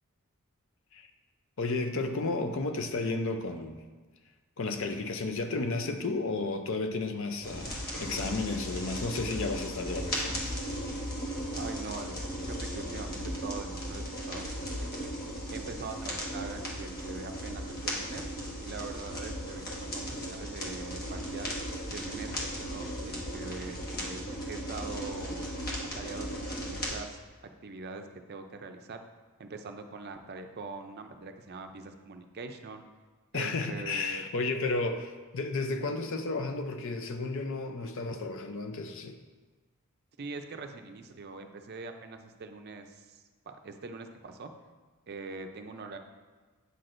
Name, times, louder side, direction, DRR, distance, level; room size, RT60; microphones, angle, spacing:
voice 1, 1.6-3.8 4.6-10.5 33.3-39.2, left 3 dB, 60° left, 6 dB, 0.5 m, -33 dB
sound 1, 7.4-26.9, equal, 45° left, 1.3 m, -36 dB
voice 2, 11.5-18.3 18.6-21.5 21.9-25.5 25.8-27.2 27.6-29.0 29.4-32.8 33.3-34.2 40.2-44.5 45.1-46.0, right 3 dB, 45° right, 6 dB, 0.5 m, -43 dB
8.1 x 6.0 x 2.5 m, 1.4 s
head